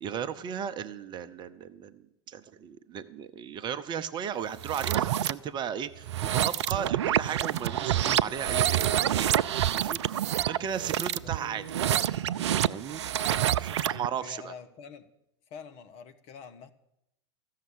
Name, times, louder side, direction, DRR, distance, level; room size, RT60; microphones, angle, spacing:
voice 1, 0.0-1.9 2.3-9.5 9.7-11.6 12.7-13.0 13.6-14.5, right 8 dB, 30° right, 0.7 m, -35 dB
sound 1, 4.6-5.3 6.0-14.1, right 11 dB, 70° right, 0.5 m, -27 dB
voice 2, 11.2-11.8 13.7-15.1 15.5-16.7, left 6 dB, 45° left, 1.2 m, -47 dB
14.0 x 6.6 x 9.5 m
figure-of-eight pair, 90°, 15 cm